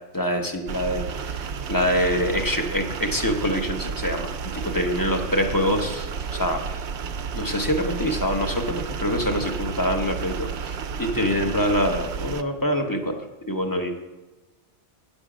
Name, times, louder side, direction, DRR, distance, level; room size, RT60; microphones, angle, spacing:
voice 1, 0.1-6.8 7.3-13.9, equal, 20° left, 3 dB, 0.8 m, -25 dB
sound 1, 0.7-12.4, right 6 dB, 75° right, 0.9 m, -32 dB
9.3 x 7.1 x 5.0 m, 1.2 s
omnidirectional pair, 1.2 m